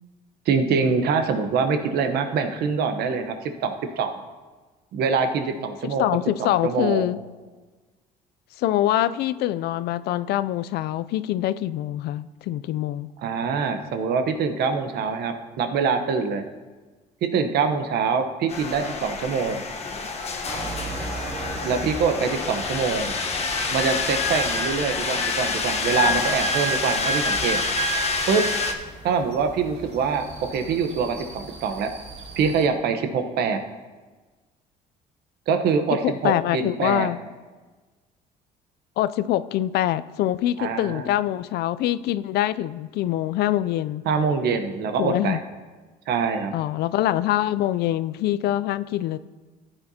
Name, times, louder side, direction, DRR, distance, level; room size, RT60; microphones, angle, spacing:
voice 1, 0.5-4.1 4.9-6.1 6.4-7.1 13.2-16.4 17.3-19.6 21.6-23.1 23.7-27.6 28.3-28.4 29.0-31.9 32.4-33.6 35.5-37.1 40.6-41.2 44.1-45.4 46.1-46.5, right 5 dB, 70° right, 7 dB, 1.0 m, -24 dB
voice 2, 6.0-7.2 8.6-13.1 36.0-37.2 39.0-44.0 45.0-45.4 46.5-49.2, left 13 dB, 75° left, 15 dB, 0.4 m, -24 dB
sound 1, 18.5-28.7, left 3 dB, 40° left, 1.1 m, -27 dB
sound 2, 20.4-32.7, right 2 dB, 40° right, 2.4 m, -39 dB
14.5 x 8.9 x 2.8 m, 1.3 s
cardioid pair, 110°, 17 cm